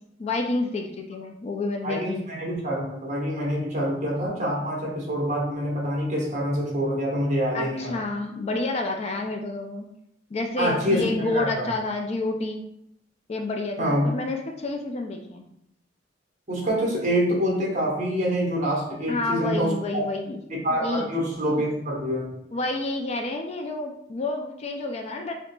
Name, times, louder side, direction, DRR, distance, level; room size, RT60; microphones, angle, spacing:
voice 1, 0.2-2.2 7.5-9.9 10.3-12.6 13.3-15.5 19.1-20.4 20.8-21.1 21.5-21.6 22.5-25.3, left 2 dB, 35° left, 3 dB, 0.4 m, -29 dB
voice 2, 1.8-8.0 10.6-11.7 13.8-14.1 16.5-20.0 20.6-22.3, equal, 40° right, -4 dB, 1.2 m, -26 dB
4.8 x 2.8 x 2.3 m, 0.78 s
head